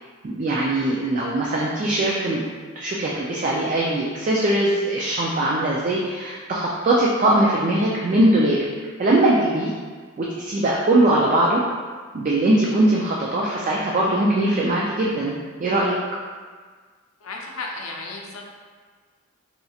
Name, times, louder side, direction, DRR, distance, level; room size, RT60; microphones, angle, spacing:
voice 1, 0.2-2.4 2.8-8.7 9.0-9.7 10.2-11.6 12.1-15.3 15.6-16.0, right 1 dB, 40° right, -4 dB, 0.3 m, -21 dB
voice 2, 17.2-18.4, left 3 dB, 85° left, 0 dB, 0.5 m, -34 dB
4.2 x 2.8 x 2.3 m, 1.5 s
head